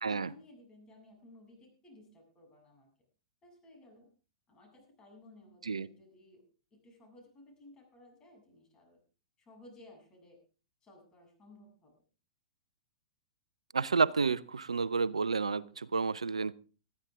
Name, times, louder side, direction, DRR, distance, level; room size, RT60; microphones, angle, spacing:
voice 1, 0.0-2.9 3.4-4.1 4.5-6.4 6.7-9.0 9.4-10.4 10.8-11.9, left 1 dB, 25° left, 2 dB, 7.5 m, -57 dB
voice 2, 13.7-16.5, right 4 dB, 80° right, 19 dB, 0.6 m, -30 dB
20.0 x 13.0 x 3.6 m, 0.36 s
figure-of-eight pair, 105°, 3 cm